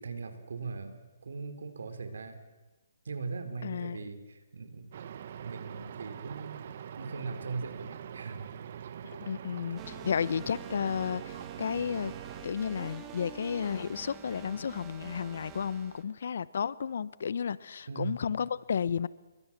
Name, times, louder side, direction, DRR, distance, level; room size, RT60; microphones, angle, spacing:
voice 1, 0.0-2.4 3.0-4.9 5.4-8.5 17.9-18.2, right 4 dB, 80° right, 4.1 m, -40 dB
voice 2, 3.6-4.0 9.0-12.1 12.4-19.1, left 7 dB, 65° left, 0.9 m, -33 dB
sound 1, 4.9-12.4, right 9 dB, 50° right, 1.1 m, -44 dB
sound 2, 9.8-16.0, right 8 dB, 15° right, 2.4 m, -47 dB
29.0 x 23.5 x 7.5 m
hypercardioid pair, 160°, 0 cm